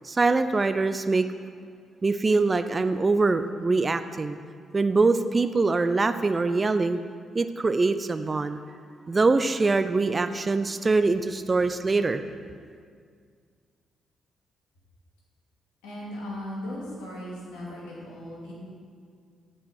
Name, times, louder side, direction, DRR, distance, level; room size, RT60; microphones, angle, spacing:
voice 1, 0.0-1.3 2.0-4.4 4.7-7.0 7.3-8.6 9.1-12.2, right 3 dB, 35° right, 10 dB, 0.4 m, -23 dB
voice 2, 15.8-18.5, left 1 dB, 85° left, -6 dB, 2.2 m, -37 dB
7.6 x 5.5 x 6.4 m, 2.1 s
hypercardioid pair, 45°, 0 cm